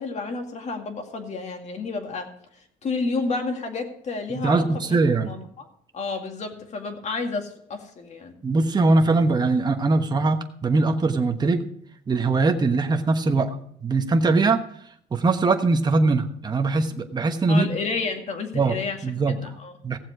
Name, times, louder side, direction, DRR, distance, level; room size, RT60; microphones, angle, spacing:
voice 1, 0.0-2.3 2.8-5.7 5.9-8.3 17.5-19.7, left 4 dB, 40° left, 4 dB, 2.2 m, -31 dB
voice 2, 4.3-5.4 8.4-11.7 12.1-13.6 13.8-14.6 15.1-17.7 18.5-18.8 19.0-19.4 19.8-20.0, right 3 dB, 25° right, 5 dB, 1.2 m, -21 dB
16.5 x 7.5 x 4.8 m, 0.67 s
cardioid pair, 110°, 17 cm